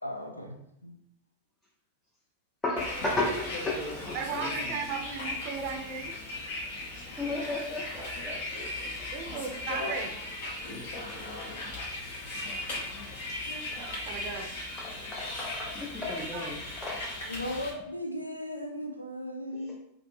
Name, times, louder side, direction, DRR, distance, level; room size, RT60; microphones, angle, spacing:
voice 1, 0.0-0.5 0.8-1.0 17.2-19.7, left 1 dB, 85° left, 4 dB, 0.4 m, -36 dB
voice 2, 2.6-4.5 7.2-8.4 14.8-17.0, left 2 dB, 10° left, -4 dB, 0.5 m, -34 dB
Bus, 2.8-17.7, left 2 dB, 55° left, 0.8 m, -37 dB
voice 3, 4.1-6.1 8.0-8.7 9.1-10.1 11.3-11.7 12.0-12.2 13.7-14.5 16.3-16.5, right 5 dB, 40° right, 2 dB, 0.5 m, -37 dB
2.6 x 2.5 x 2.6 m, 0.76 s
figure-of-eight pair, 90°, 0 cm